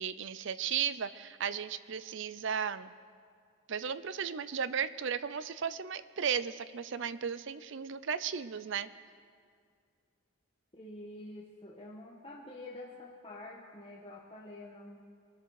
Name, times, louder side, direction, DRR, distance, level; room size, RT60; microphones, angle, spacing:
voice 1, 0.0-2.9 3.7-8.9, right 7 dB, 60° right, 14 dB, 0.5 m, -35 dB
voice 2, 10.7-15.0, left 1 dB, 25° left, -3 dB, 1.2 m, -47 dB
23.0 x 13.0 x 4.8 m, 2.2 s
head